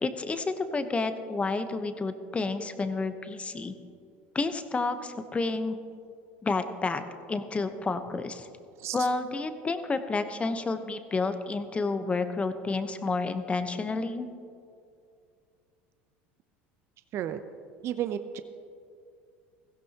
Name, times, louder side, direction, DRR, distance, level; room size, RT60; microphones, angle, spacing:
voice 1, 0.0-3.7 4.3-5.8 6.4-7.0 7.3-8.5 8.9-14.3, left 3 dB, 20° left, 9 dB, 0.9 m, -30 dB
voice 2, 17.8-18.4, right 10 dB, 50° right, 10 dB, 0.6 m, -32 dB
17.0 x 15.5 x 2.9 m, 2.4 s
hypercardioid pair, 90°, 6 cm